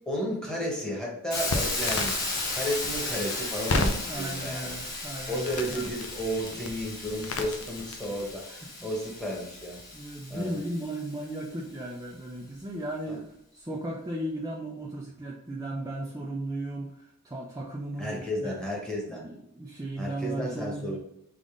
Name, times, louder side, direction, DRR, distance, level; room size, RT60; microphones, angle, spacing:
voice 1, 0.0-2.2 2.5-4.7 5.3-9.8 10.3-10.6 13.1-13.2 18.0-19.3 20.0-21.0, equal, 5° left, -3 dB, 1.2 m, -33 dB
Hiss, 1.3-11.2, left 2 dB, 40° left, 1.5 m, -35 dB
Crackle, 1.5-8.3, left 2 dB, 75° left, 0.6 m, -34 dB
voice 2, 4.0-5.8 9.9-13.3 13.5-18.6 19.1-21.0, right 1 dB, 15° right, -3 dB, 0.5 m, -36 dB
3.7 x 3.6 x 3.7 m, 0.80 s
head